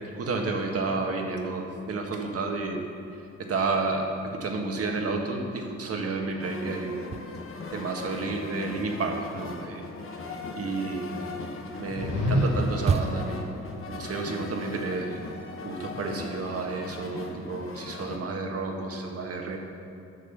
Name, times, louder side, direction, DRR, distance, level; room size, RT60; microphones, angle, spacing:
voice 1, 0.1-2.9 3.4-7.1 7.7-9.9 10.5-11.1 11.8-13.5 13.9-15.2 15.6-19.6, right 3 dB, 50° right, 2 dB, 1.6 m, -31 dB
sound 1, 6.4-18.2, left 3 dB, 45° left, 1.2 m, -39 dB
sound 2, 6.9-8.1 8.4-13.5, right 5 dB, 20° right, 0.4 m, -33 dB
sound 3, 11.7-13.0, left 1 dB, 60° left, 1.4 m, -27 dB
9.3 x 6.7 x 6.6 m, 2.7 s
cardioid pair, 90°, 30 cm